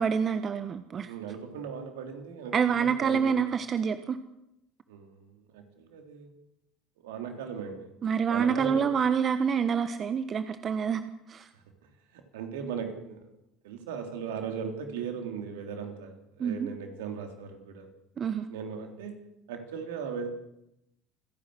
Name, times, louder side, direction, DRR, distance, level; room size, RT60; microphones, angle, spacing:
voice 1, 0.0-1.1 2.5-4.2 8.0-11.0 11.3-11.5 16.4-16.7 18.2-18.5, right 7 dB, 40° right, 10 dB, 1.3 m, -27 dB
voice 2, 1.1-3.4 4.9-6.3 7.0-7.9 8.3-8.8 11.5-13.2 13.6-17.9 18.5-19.2 19.5-20.3, right 7 dB, 75° right, 5 dB, 3.6 m, -38 dB
28.5 x 11.0 x 8.2 m, 0.83 s
hypercardioid pair, 65°, 0 cm